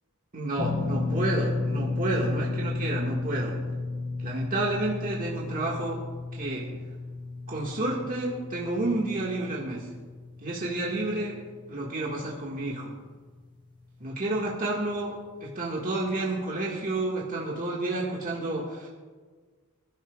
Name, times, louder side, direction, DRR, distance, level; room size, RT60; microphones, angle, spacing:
voice 1, 0.3-3.5 4.2-6.0 6.3-6.6 7.5-9.8 10.4-11.4 11.7-12.9 14.0-15.1 15.4-18.9, right 2 dB, 40° right, -4 dB, 1.7 m, -30 dB
sound 1, 0.6-12.8 13.1-13.3 15.0-15.1, left 3 dB, 20° left, 1.2 m, -33 dB
26.0 x 11.5 x 2.4 m, 1.5 s
head